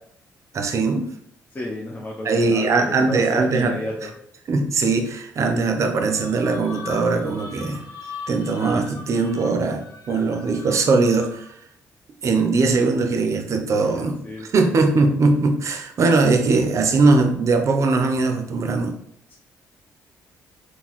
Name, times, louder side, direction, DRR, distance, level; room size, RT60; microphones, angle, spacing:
voice 1, 0.5-1.1 2.2-3.8 4.0-4.1 4.5-7.8 8.3-9.8 10.1-11.5 12.2-18.9, right 3 dB, 55° right, 4 dB, 0.6 m, -20 dB
voice 2, 1.5-4.1 13.8-14.7, left 1 dB, 30° left, -2 dB, 0.6 m, -32 dB
sound 1, 5.9-11.6, left 4 dB, 75° left, 0.7 m, -40 dB
3.8 x 2.2 x 2.9 m, 0.70 s
cardioid pair, 75°, 6 cm